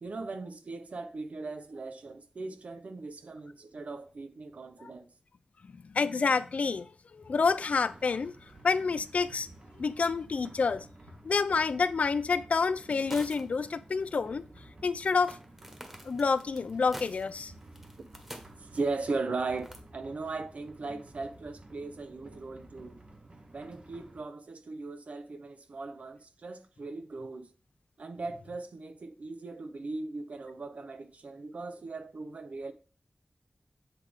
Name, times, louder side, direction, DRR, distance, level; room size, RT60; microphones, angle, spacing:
voice 1, 0.0-5.1 18.6-23.0 23.5-27.5 28.0-32.7, right 3 dB, 80° right, 0.6 m, -38 dB
voice 2, 5.7-8.3 8.6-9.5 9.8-10.9 11.2-14.4 14.8-15.4 16.0-17.5, left 4 dB, 75° left, 0.3 m, -28 dB
sound 1, 7.2-24.2, right 2 dB, 50° right, 0.9 m, -53 dB
sound 2, 12.9-13.7 13.9-14.0 15.2-19.0 19.6-19.8, equal, 10° right, 1.3 m, -47 dB
8.1 x 3.5 x 3.4 m
wide cardioid pair, 65°, 2 cm